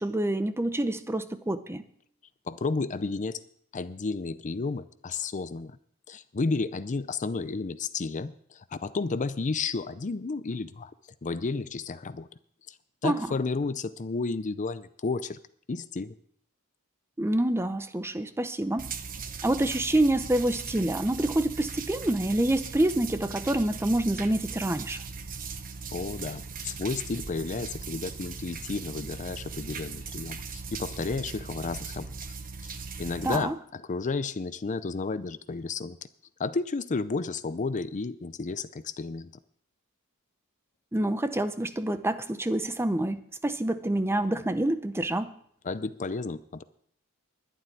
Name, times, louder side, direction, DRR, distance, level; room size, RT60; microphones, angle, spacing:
voice 1, 0.0-1.8 13.0-13.3 17.2-18.9 19.4-25.0 33.2-33.6 40.9-45.3, right 1 dB, 10° right, 11 dB, 0.6 m, -27 dB
voice 2, 2.5-3.4 3.7-5.8 6.1-10.9 11.2-12.3 12.7-12.8 13.0-15.4 15.7-16.1 25.9-32.1 32.6-36.0 36.4-39.3 45.6-46.6, left 4 dB, 35° left, 13 dB, 0.5 m, -32 dB
sound 1, 18.8-33.4, right 5 dB, 40° right, 1.0 m, -39 dB
11.5 x 7.6 x 9.9 m, 0.65 s
head